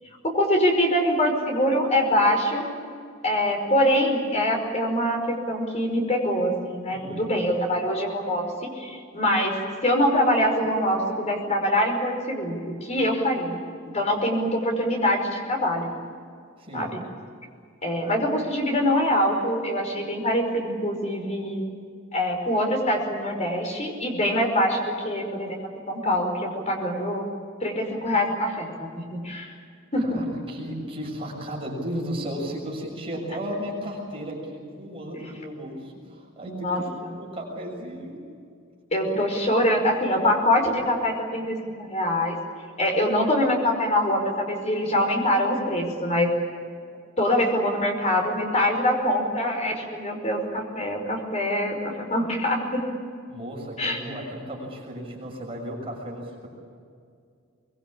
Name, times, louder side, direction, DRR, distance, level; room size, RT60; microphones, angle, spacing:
voice 1, 0.2-2.6 3.2-9.6 9.8-13.5 13.9-15.9 16.7-17.0 17.8-21.6 22.1-25.6 25.9-27.2 27.6-29.5 29.9-30.2 36.4-36.8 38.9-42.4 42.8-46.3 47.2-52.8 53.8-54.2, left 1 dB, 30° left, 2 dB, 5.3 m, -24 dB
voice 2, 6.9-7.2 16.6-16.9 30.0-36.9 37.1-38.2 39.0-39.3 53.3-56.5, equal, 25° right, -2 dB, 6.6 m, -35 dB
24.0 x 22.5 x 8.7 m, 2.3 s
head